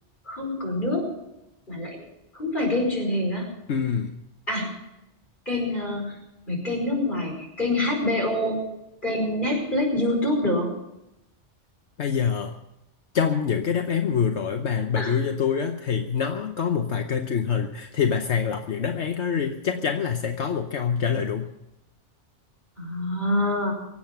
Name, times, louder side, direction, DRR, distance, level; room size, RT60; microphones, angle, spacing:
voice 1, 0.3-1.1 1.7-2.1 2.3-3.5 4.5-4.8 5.5-6.2 6.5-8.6 9.0-10.7 15.0-15.2 22.8-23.7, left 1 dB, 45° left, 0 dB, 5.3 m, -26 dB
voice 2, 3.7-4.2 12.0-12.5 13.1-21.5, left 7 dB, 70° left, 6 dB, 1.2 m, -25 dB
23.5 x 8.5 x 5.8 m, 0.88 s
omnidirectional pair, 1.2 m